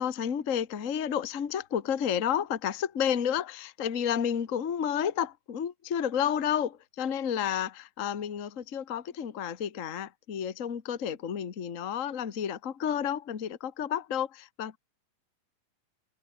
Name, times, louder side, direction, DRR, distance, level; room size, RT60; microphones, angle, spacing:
voice 1, 0.0-14.8, left 8 dB, 60° left, 0.7 m, -31 dB
omnidirectional pair, 4.1 m